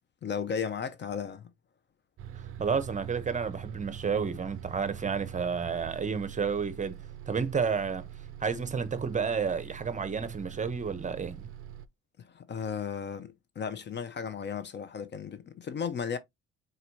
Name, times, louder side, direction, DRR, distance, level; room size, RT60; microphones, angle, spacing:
voice 1, 0.2-1.5 12.3-16.2, left 7 dB, 35° left, 0.6 m, -35 dB
Bus, 2.2-11.9, right 10 dB, 45° right, 0.5 m, -44 dB
voice 2, 2.6-7.0 7.3-8.0 8.4-11.5, right 6 dB, 25° right, 0.8 m, -31 dB
4.2 x 3.9 x 2.7 m
hypercardioid pair, 60°, 31 cm